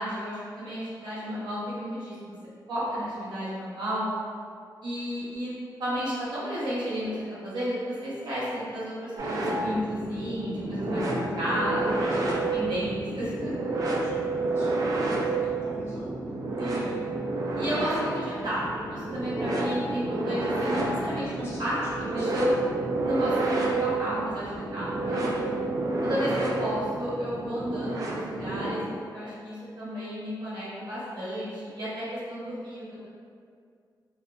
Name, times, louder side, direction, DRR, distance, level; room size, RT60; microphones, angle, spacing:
voice 1, 0.0-2.3 2.7-4.1 4.8-11.0 11.4-13.7 16.6-17.0 17.6-18.6 18.9-22.6 23.0-25.5 26.0-33.1, equal, 75° right, -9 dB, 0.9 m, -32 dB
sound 1, 9.2-28.7, right 2 dB, 50° right, 0.4 m, -30 dB
voice 2, 12.0-12.4 14.0-16.1 16.7-17.0 17.6-17.9 20.5-21.8 22.1-22.3, left 1 dB, 30° left, -8 dB, 0.7 m, -42 dB
2.6 x 2.2 x 2.4 m, 2.2 s
wide cardioid pair, 155°, 8 cm